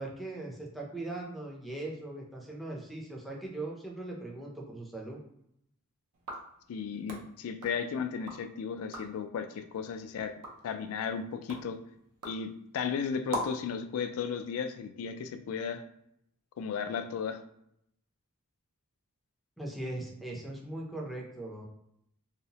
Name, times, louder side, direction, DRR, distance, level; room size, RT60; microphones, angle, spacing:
voice 1, 0.0-5.2 19.6-21.7, right 2 dB, ahead, -2 dB, 0.5 m, -39 dB
sound 1, 6.1-8.5 8.8-9.3 9.7-13.7, right 1 dB, 80° right, 0.6 m, -43 dB
voice 2, 6.7-10.3 10.6-11.8 12.2-15.8 16.6-17.4, left 6 dB, 65° left, 9 dB, 0.3 m, -35 dB
2.7 x 2.0 x 2.8 m, 0.74 s
head